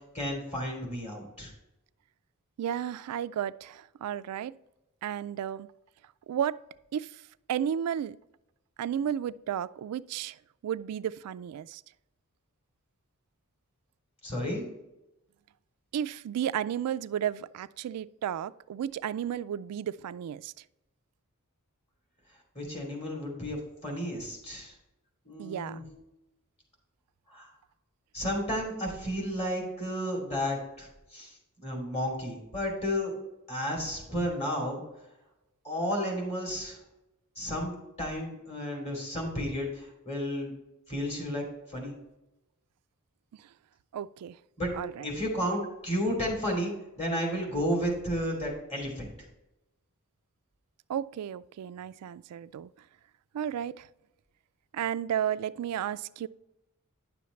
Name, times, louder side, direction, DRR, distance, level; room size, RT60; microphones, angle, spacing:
voice 1, 0.1-1.5 14.2-14.7 22.5-24.7 25.2-25.8 27.3-27.5 28.1-31.3 31.6-33.1 33.5-34.8 35.6-36.8 37.4-40.5 40.9-41.4 41.7-41.9 44.6-44.7 45.0-49.1, equal, 30° left, 2.8 m, -32 dB
voice 2, 2.6-4.6 5.0-5.7 6.3-6.6 6.9-7.1 7.5-8.2 8.8-10.4 10.6-11.8 15.9-20.5 25.4-25.8 43.9-44.4 44.7-45.1 50.9-52.7 53.3-53.9 54.7-56.3, right 9 dB, 90° right, 0.3 m, -33 dB
10.0 x 6.9 x 3.2 m
head